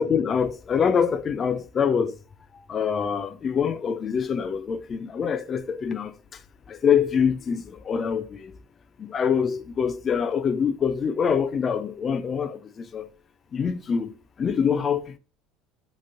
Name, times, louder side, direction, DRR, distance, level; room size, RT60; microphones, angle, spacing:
voice 1, 0.0-2.1 2.7-6.1 6.7-8.5 9.0-13.1 13.5-14.1 14.4-15.2, left 7 dB, 35° left, 0.3 m, -25 dB
2.9 x 2.6 x 2.5 m
hypercardioid pair, 70°, 0 cm